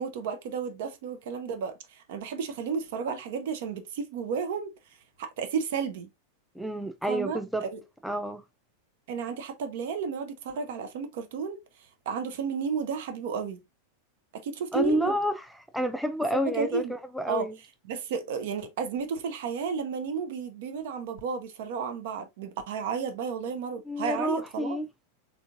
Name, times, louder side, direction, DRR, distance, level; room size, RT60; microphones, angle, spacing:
voice 1, 0.0-4.7 5.2-6.1 7.1-7.8 9.1-11.6 12.1-13.6 14.3-15.2 16.3-16.9 17.3-17.5 17.9-24.8, right 6 dB, 55° right, 0.7 m, -32 dB
voice 2, 6.6-7.6 8.0-8.4 14.7-15.3 15.7-17.5 23.9-24.9, equal, ahead, 0.4 m, -29 dB
3.8 x 3.4 x 2.4 m
figure-of-eight pair, 90°, 0 cm